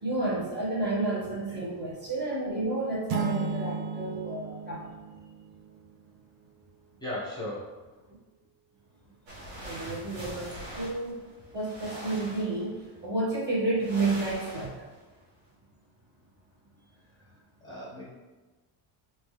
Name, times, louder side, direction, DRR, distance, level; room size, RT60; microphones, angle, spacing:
voice 1, 0.0-4.8 9.6-11.2 11.5-12.8 13.0-14.7, right 2 dB, 25° right, -8 dB, 1.5 m, -30 dB
sound 1, 3.1-5.9, right 5 dB, 65° right, 0.6 m, -34 dB
voice 2, 7.0-7.6 17.6-18.1, left 1 dB, 10° left, -9 dB, 1.2 m, -36 dB
sound 2, 9.3-12.9 13.8-15.0, right 1 dB, 80° right, 1.5 m, -43 dB
3.4 x 2.9 x 3.2 m, 1.2 s
cardioid pair, 105°, 44 cm